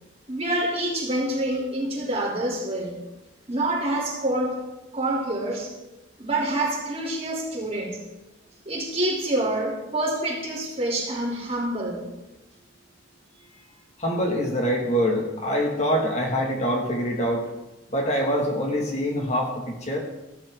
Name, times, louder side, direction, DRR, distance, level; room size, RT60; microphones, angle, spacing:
voice 1, 0.3-3.0 3.5-4.6 4.9-5.7 6.2-8.0 8.6-12.0, right 1 dB, 30° right, -3 dB, 3.1 m, -27 dB
voice 2, 14.0-17.4 17.9-20.0, equal, 35° left, 0 dB, 2.0 m, -25 dB
14.5 x 13.0 x 3.8 m, 1.0 s
head